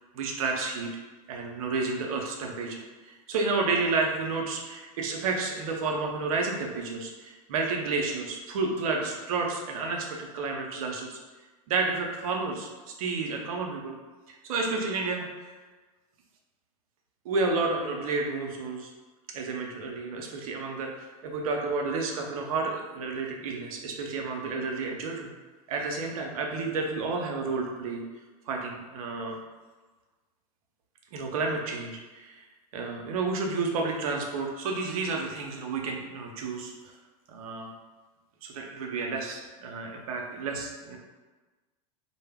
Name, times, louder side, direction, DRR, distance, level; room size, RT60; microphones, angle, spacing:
voice 1, 0.1-0.9 1.3-11.2 11.7-12.7 13.0-14.0 14.4-15.3 17.2-18.9 19.3-25.3 25.7-28.0 28.5-29.4 31.1-32.4 32.7-36.9 37.3-37.7 38.4-41.0, right 3 dB, 75° right, 1 dB, 0.6 m, -31 dB
2.1 x 2.0 x 3.4 m, 1.3 s
hypercardioid pair, 110°, 19 cm